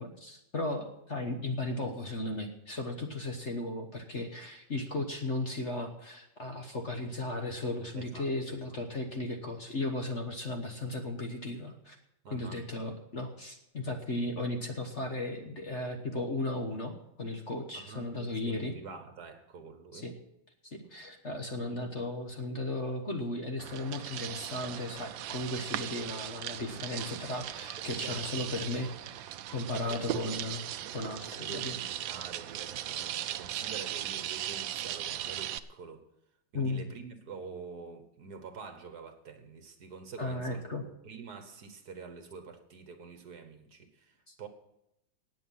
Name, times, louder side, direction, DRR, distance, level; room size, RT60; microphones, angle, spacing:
voice 1, 0.0-12.0 12.3-18.7 19.9-20.1 20.6-31.8 36.5-36.9 40.2-40.9 44.3-44.4, left 2 dB, 40° left, 1.3 m, -36 dB
voice 2, 7.9-9.1 12.2-12.7 17.7-20.1 27.8-28.5 29.7-30.1 31.3-36.0 36.5-44.5, right 5 dB, 55° right, 1.6 m, -47 dB
sound 1, 23.6-35.6, right 12 dB, 75° right, 1.3 m, -38 dB
18.5 x 7.9 x 5.6 m
omnidirectional pair, 2.2 m